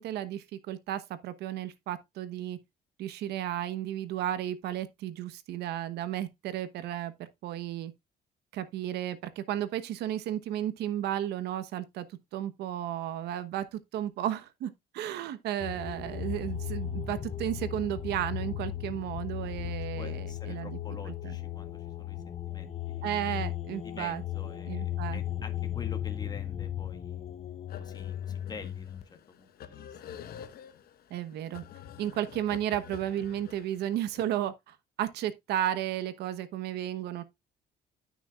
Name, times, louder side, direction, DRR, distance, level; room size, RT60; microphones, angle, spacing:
voice 1, 0.0-2.6 3.0-7.9 8.5-20.8 21.1-21.3 23.0-24.2 24.7-25.2 31.1-31.6 32.0-37.2, right 11 dB, 80° right, 1.1 m, -33 dB
sound 1, 15.6-29.0, left 10 dB, 40° left, 0.8 m, -36 dB
voice 2, 19.6-23.1 23.8-27.2 27.8-30.0, left 4 dB, 25° left, 1.8 m, -47 dB
sound 2, 27.7-34.2, left 9 dB, 65° left, 1.1 m, -48 dB
14.0 x 6.2 x 2.4 m
cardioid pair, 110°, 17 cm